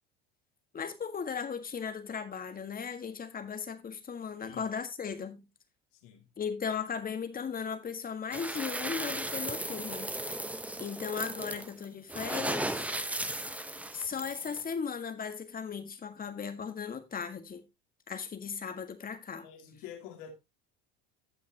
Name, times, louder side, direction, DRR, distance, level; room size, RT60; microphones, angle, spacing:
voice 1, 0.7-5.5 6.4-10.5 10.8-12.9 13.9-17.6 18.1-19.5, left 6 dB, 30° left, 1.6 m, -37 dB
voice 2, 5.9-6.3 19.4-20.3, left 9 dB, 70° left, 2.5 m, -47 dB
sound 1, 8.3-14.7, right 1 dB, 5° right, 0.8 m, -36 dB
15.5 x 5.7 x 2.8 m
hypercardioid pair, 80°, 30 cm